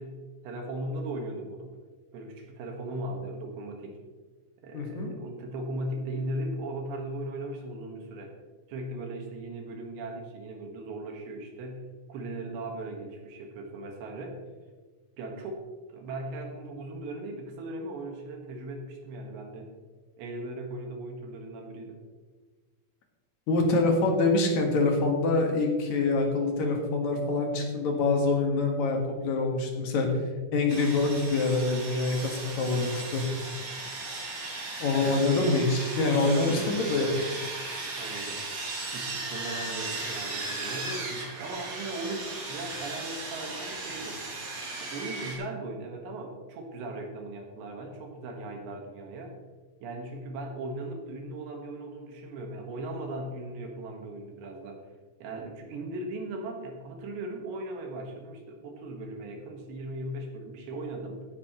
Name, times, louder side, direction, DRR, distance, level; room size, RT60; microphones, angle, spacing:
voice 1, 0.0-1.7 2.1-4.0 4.6-8.3 8.7-14.4 15.2-15.6 15.9-19.7 20.2-22.0 34.9-35.9 36.2-37.2 38.0-44.2 44.8-49.4 49.8-54.8 55.2-61.3, right 2 dB, 75° right, 2 dB, 3.7 m, -38 dB
voice 2, 4.7-5.1 23.5-30.1 30.5-33.2 34.8-37.1, left 3 dB, 55° left, 2 dB, 2.2 m, -25 dB
Sawing, 30.7-45.4, right 3 dB, 55° right, 5.8 m, -37 dB
17.0 x 9.7 x 3.1 m, 1.4 s
omnidirectional pair, 5.2 m